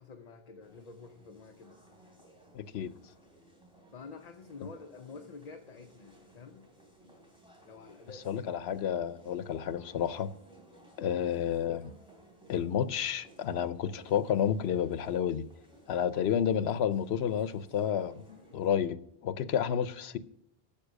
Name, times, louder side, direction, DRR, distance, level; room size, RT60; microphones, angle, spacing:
voice 1, 0.0-1.8 3.9-6.7 7.6-8.3 11.0-11.2, left 4 dB, 45° left, 0.8 m, -48 dB
sound 1, 0.6-18.7, right 1 dB, 5° right, 3.3 m, -59 dB
voice 2, 2.5-2.9 8.3-10.3 11.0-11.9 12.5-15.5 15.9-20.2, left 9 dB, 90° left, 0.9 m, -30 dB
10.0 x 7.2 x 6.2 m
omnidirectional pair, 1.0 m